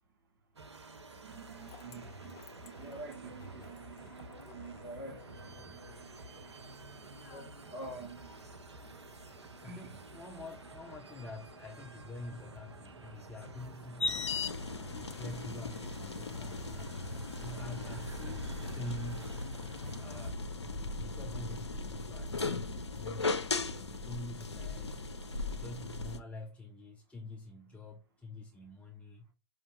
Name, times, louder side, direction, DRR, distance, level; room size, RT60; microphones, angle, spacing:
sound 1, 0.6-20.3, right 3 dB, 85° right, 0.5 m, -51 dB
voice 1, 1.1-7.0 7.3-10.0 13.9-15.6 16.8-17.6, right 2 dB, 50° right, 2.3 m, -50 dB
sound 2, 1.5-20.0, left 5 dB, 35° left, 0.8 m, -60 dB
voice 2, 9.6-14.5 14.9-17.0 17.4-19.3 20.0-23.3 23.7-24.9 25.5-29.2, left 2 dB, 10° left, 0.4 m, -46 dB
sound 3, 14.0-26.2, left 3 dB, 85° left, 0.5 m, -37 dB
5.2 x 2.4 x 3.0 m
figure-of-eight pair, 100°, 14 cm